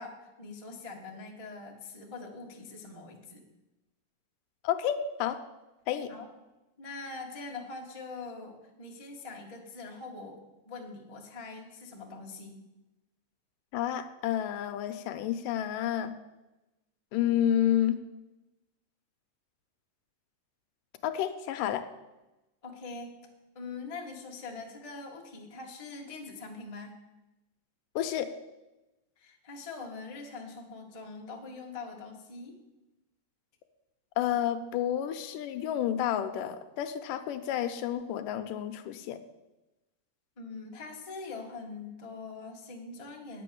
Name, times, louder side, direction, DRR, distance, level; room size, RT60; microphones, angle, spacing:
voice 1, 0.0-3.4 6.1-6.3 6.8-12.6 22.6-23.2 23.5-27.0 29.2-32.6 40.4-43.4, left 3 dB, 55° left, -1 dB, 0.3 m, -43 dB
voice 2, 4.6-5.4 5.9-6.1 13.7-16.1 17.1-18.0 21.0-21.8 28.0-28.3 34.2-39.2, left 10 dB, 80° left, 9 dB, 2.2 m, -30 dB
9.8 x 8.4 x 6.9 m, 1.0 s
omnidirectional pair, 4.0 m